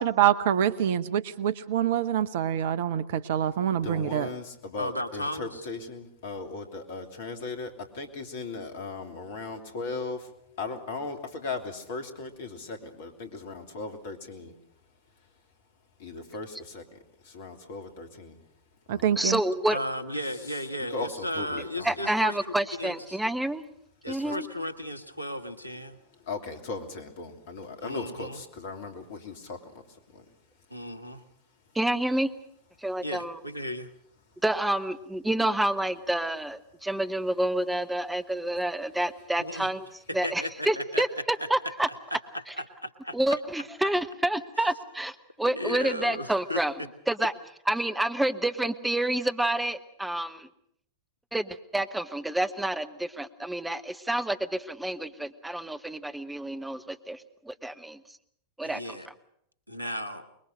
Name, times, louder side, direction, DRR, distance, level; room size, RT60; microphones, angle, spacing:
voice 1, 0.0-4.3 18.9-19.4, right 10 dB, 55° right, 15 dB, 1.0 m, -25 dB
voice 2, 3.7-19.3 20.3-22.0 24.1-24.4 25.9-31.8 32.8-32.9 34.3-34.4, left 3 dB, 55° left, 6 dB, 3.1 m, -39 dB
voice 3, 4.8-5.5 19.7-22.4 22.8-23.2 24.0-26.0 27.8-28.4 30.7-31.3 33.0-33.9 39.4-39.7 40.1-41.0 42.6-43.4 45.5-46.6 58.6-59.1 59.7-60.3, equal, 90° right, 12 dB, 1.4 m, -35 dB
voice 4, 19.2-19.8 21.8-23.6 24.1-24.4 31.7-32.3 32.8-33.4 34.4-39.9 40.1-41.9 42.5-42.6 43.1-46.7 47.1-47.3 47.7-50.5 51.3-58.2 58.6-59.1, right 1 dB, 5° right, 10 dB, 1.2 m, -28 dB
25.0 x 21.5 x 6.7 m, 0.70 s
figure-of-eight pair, 90°, 0 cm